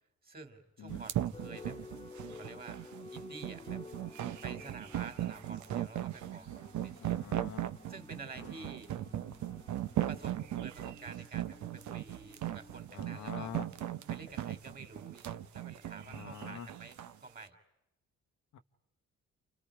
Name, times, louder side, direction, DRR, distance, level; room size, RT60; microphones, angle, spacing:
voice 1, 0.2-1.8 2.3-2.8 3.1-3.8 4.4-7.3 7.9-8.9 10.1-13.5 14.1-17.6, right 4 dB, 30° right, 8 dB, 2.9 m, -50 dB
sound 1, 0.9-17.2, right 12 dB, 75° right, 1.0 m, -38 dB
sound 2, 1.3-14.7, left 3 dB, 15° left, 1.3 m, -53 dB
voice 2, 7.0-7.6 8.4-8.7 12.9-13.7 16.1-16.7 18.5-18.6, left 8 dB, 70° left, 7 dB, 1.1 m, -45 dB
sound 3, 8.0-14.8, right 7 dB, 55° right, 1.5 m, -63 dB
29.5 x 29.0 x 5.0 m, 0.88 s
cardioid pair, 90°, 30 cm